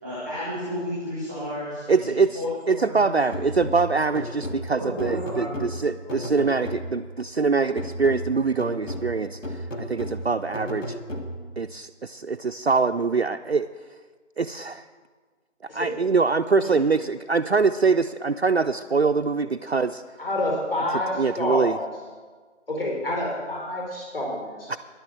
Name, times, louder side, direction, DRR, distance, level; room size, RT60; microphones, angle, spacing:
voice 1, 0.0-3.1 4.8-5.7 6.0-6.2, equal, 10° left, -9 dB, 1.4 m, -32 dB
voice 2, 1.9-2.4 2.7-10.9 11.6-13.7 14.4-14.8 15.7-20.0 20.9-21.8 24.7-24.8, right 4 dB, 55° right, 5 dB, 0.4 m, -24 dB
sound 1, 3.3-7.2 7.8-11.6, equal, 80° left, 2.1 m, -34 dB
voice 3, 20.2-21.9 22.7-24.8, left 1 dB, 50° left, -1 dB, 4.4 m, -28 dB
10.5 x 9.9 x 7.4 m, 1.5 s
figure-of-eight pair, 165°, 37 cm